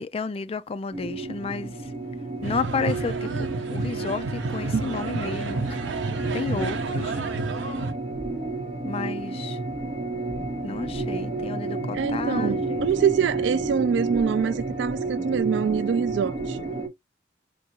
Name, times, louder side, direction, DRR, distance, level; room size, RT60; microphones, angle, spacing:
voice 1, 0.0-1.7 2.4-3.5 3.7-5.8 6.3-7.2 8.8-9.6 10.6-12.9, left 4 dB, 30° left, 0.3 m, -31 dB
sound 1, 0.9-16.9, right 3 dB, 30° right, 1.9 m, -31 dB
sound 2, 2.4-7.9, right 3 dB, 85° right, 0.7 m, -31 dB
voice 2, 4.7-5.1 11.9-16.6, right 7 dB, 70° right, 0.3 m, -25 dB
5.3 x 2.5 x 2.9 m
head